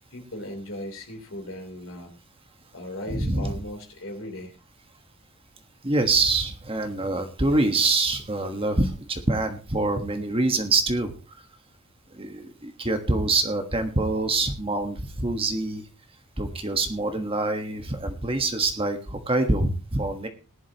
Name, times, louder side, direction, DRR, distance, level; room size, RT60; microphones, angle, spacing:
voice 1, 0.1-2.1 2.7-4.6, left 1 dB, 60° left, 4 dB, 3.4 m, -37 dB
voice 2, 3.1-3.6 5.8-11.1 12.1-15.8 16.4-20.3, right 2 dB, 25° right, 6 dB, 1.3 m, -25 dB
17.5 x 11.5 x 2.9 m, 0.33 s
head